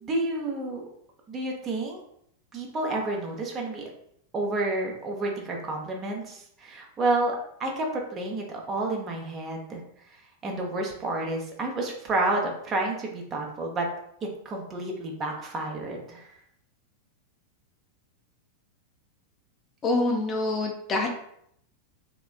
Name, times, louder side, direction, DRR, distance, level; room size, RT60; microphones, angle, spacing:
voice 1, 0.0-0.8 1.3-2.0 2.5-3.9 4.3-7.9 8.1-9.8 10.4-13.9 14.2-16.2, right 2 dB, 25° right, 0 dB, 0.6 m, -30 dB
voice 2, 19.8-21.1, left 2 dB, 25° left, 2 dB, 0.4 m, -26 dB
3.2 x 2.2 x 2.3 m, 0.72 s
figure-of-eight pair, 90°, 0 cm